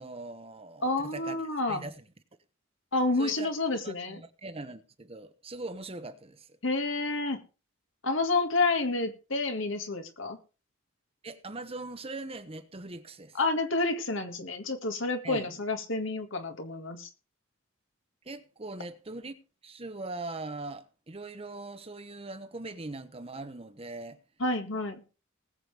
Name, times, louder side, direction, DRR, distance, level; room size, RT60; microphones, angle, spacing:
voice 1, 0.0-1.4 1.7-2.0 3.2-3.6 3.8-6.6 11.2-13.4 15.2-15.5 18.2-24.2, right 2 dB, 30° right, 0.9 m, -41 dB
voice 2, 0.8-1.8 2.9-4.2 6.6-7.4 8.0-10.4 13.3-17.1 24.4-25.0, left 2 dB, 65° left, 1.9 m, -29 dB
19.5 x 7.8 x 3.4 m
head